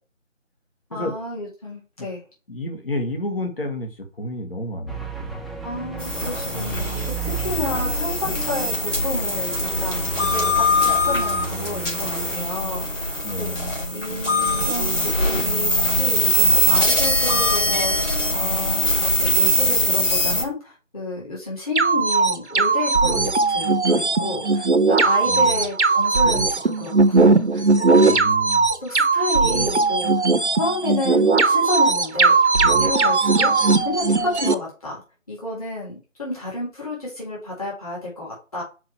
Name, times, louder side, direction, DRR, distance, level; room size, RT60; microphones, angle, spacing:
voice 1, 0.9-2.2 5.6-13.0 13.4-27.6 27.9-28.4 28.8-30.1 30.6-32.3 32.8-33.5 33.8-35.0 35.3-38.6, left 2 dB, 30° left, -5 dB, 3.9 m, -31 dB
voice 2, 2.5-5.4 13.2-13.7 25.2-25.6 28.0-28.7, left 1 dB, 45° left, 3 dB, 2.0 m, -30 dB
sound 1, 4.9-12.4, right 4 dB, ahead, 0.4 m, -34 dB
sound 2, 6.0-20.4, left 1 dB, 65° left, 3.8 m, -22 dB
sound 3, 21.8-34.5, right 3 dB, 60° right, 0.8 m, -18 dB
5.5 x 4.9 x 4.4 m, 0.32 s
figure-of-eight pair, 170°, 39 cm